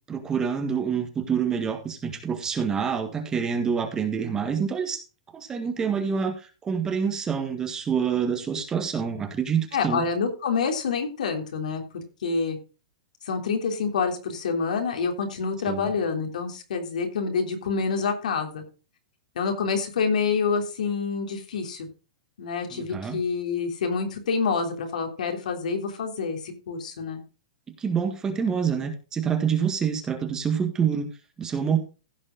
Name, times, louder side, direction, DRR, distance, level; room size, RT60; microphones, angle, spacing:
voice 1, 0.1-5.0 5.3-10.0 15.6-15.9 22.7-23.2 27.8-31.1 31.4-31.8, right 7 dB, 15° right, 6 dB, 1.7 m, -27 dB
voice 2, 9.7-12.6 13.2-18.6 19.3-21.9 22.4-27.2, left 5 dB, 80° left, 4 dB, 3.3 m, -27 dB
15.5 x 5.4 x 4.9 m, 0.33 s
hypercardioid pair, 150°, 4 cm